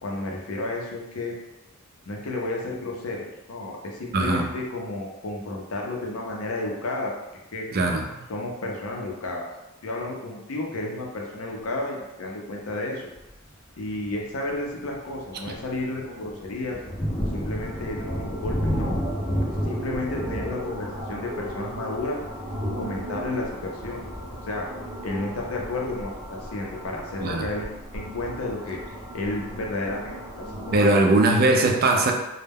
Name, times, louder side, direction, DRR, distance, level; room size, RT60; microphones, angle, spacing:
voice 1, 0.0-1.3 2.1-7.1 7.5-7.7 8.3-9.4 9.8-13.1 13.8-16.8 17.3-19.0 19.4-22.2 22.7-24.0 24.5-24.7 25.0-28.8 29.1-30.9, left 2 dB, 90° left, -1 dB, 0.5 m, -32 dB
voice 2, 4.1-4.5 7.7-8.1 27.2-27.5 30.7-32.1, right 2 dB, 45° right, 2 dB, 0.3 m, -20 dB
Thunder, 13.1-13.5 14.0-14.2 14.6-25.2, equal, 25° left, 0.5 m, -32 dB
sound 1, 17.6-30.8, equal, 15° right, 0.7 m, -37 dB
2.1 x 2.1 x 3.4 m, 0.98 s
head